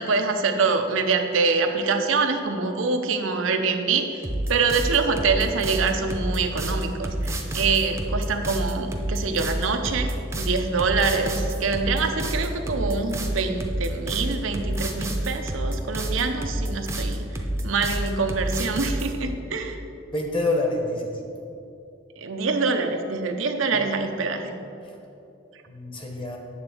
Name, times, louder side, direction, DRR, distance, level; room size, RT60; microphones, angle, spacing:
voice 1, 0.0-17.3 17.6-19.8 22.2-24.5, right 4 dB, 85° right, 6 dB, 0.7 m, -25 dB
sound 1, 4.2-19.1, right 1 dB, 15° right, 0.6 m, -28 dB
voice 2, 20.1-21.2 23.7-24.1 25.7-26.4, left 2 dB, 25° left, 1 dB, 1.1 m, -27 dB
8.7 x 4.0 x 6.9 m, 2.7 s
head